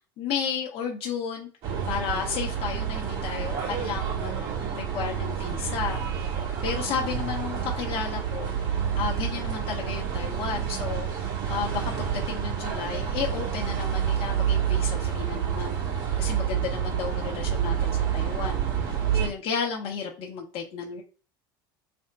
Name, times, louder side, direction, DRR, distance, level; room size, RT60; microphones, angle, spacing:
voice 1, 0.2-1.5 1.9-18.7 19.1-21.0, left 6 dB, 55° left, 0 dB, 0.8 m, -33 dB
sound 1, 1.6-19.3, right 8 dB, 55° right, 1.8 m, -28 dB
3.4 x 2.1 x 3.9 m, 0.38 s
hypercardioid pair, 80°, 12 cm